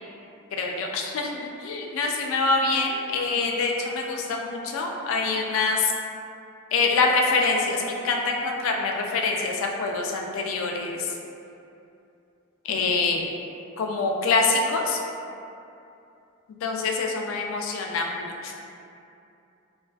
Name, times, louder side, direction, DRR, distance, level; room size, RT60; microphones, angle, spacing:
voice 1, 0.5-5.9 6.7-11.2 12.6-13.3 13.8-15.0 16.6-18.5, left 3 dB, 70° left, 1 dB, 0.3 m, -25 dB
2.3 x 2.3 x 2.3 m, 2.6 s
head